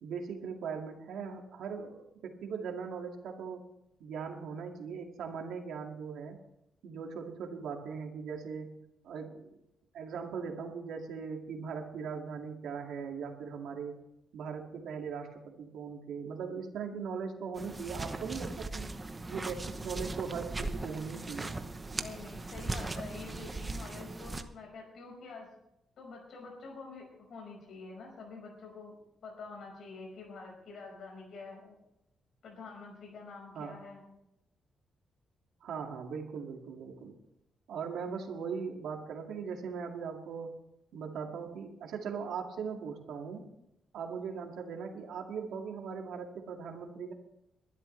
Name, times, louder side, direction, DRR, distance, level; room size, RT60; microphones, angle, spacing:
voice 1, 0.0-3.6 4.0-6.4 6.8-8.7 9.0-9.6 9.9-14.0 14.3-18.9 19.3-21.5 33.5-33.8 35.6-37.2 37.7-40.5 40.9-43.4 43.9-47.1, right 6 dB, 90° right, 2 dB, 2.2 m, -39 dB
sound 1, 17.6-24.4, right 2 dB, 20° right, 0.9 m, -39 dB
voice 2, 21.9-25.5 26.0-29.0 29.2-31.7 32.4-34.0, left 4 dB, 60° left, 0 dB, 5.0 m, -47 dB
22.5 x 11.5 x 3.3 m, 0.82 s
wide cardioid pair, 155°, 0 cm